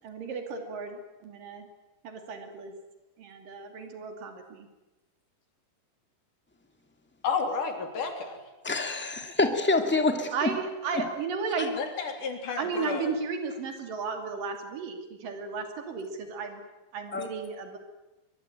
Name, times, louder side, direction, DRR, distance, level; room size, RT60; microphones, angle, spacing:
voice 1, 0.0-1.7 2.0-2.7 3.2-4.7 10.3-11.8 12.6-16.6 16.9-17.8, right 4 dB, 85° right, 5 dB, 4.5 m, -34 dB
voice 2, 7.2-8.4 11.8-13.1, left 5 dB, 70° left, 5 dB, 4.9 m, -31 dB
voice 3, 8.6-10.5 17.1-17.3, left 2 dB, 5° left, 5 dB, 1.8 m, -26 dB
24.5 x 22.0 x 9.2 m, 1.1 s
omnidirectional pair, 3.8 m